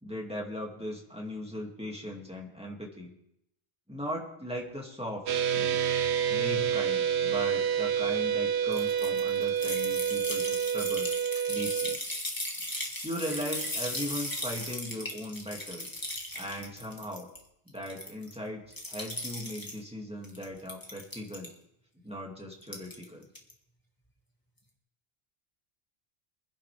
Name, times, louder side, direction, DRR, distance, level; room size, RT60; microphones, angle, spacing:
voice 1, 0.0-3.1 3.9-5.3 5.5-5.8 6.3-11.1 11.5-12.0 13.0-15.9 16.3-17.3 17.7-18.6 18.9-21.5 22.0-23.3, equal, 5° right, -1 dB, 2.4 m, -38 dB
sound 1, 5.3-12.0, right 8 dB, 80° right, 1.0 m, -28 dB
sound 2, 8.7-17.4 17.7-18.3 18.7-19.8 20.2-21.5 22.6-23.0 23.3-23.5, left 1 dB, 20° left, 2.0 m, -37 dB
23.5 x 10.5 x 3.5 m, 0.79 s
omnidirectional pair, 1.1 m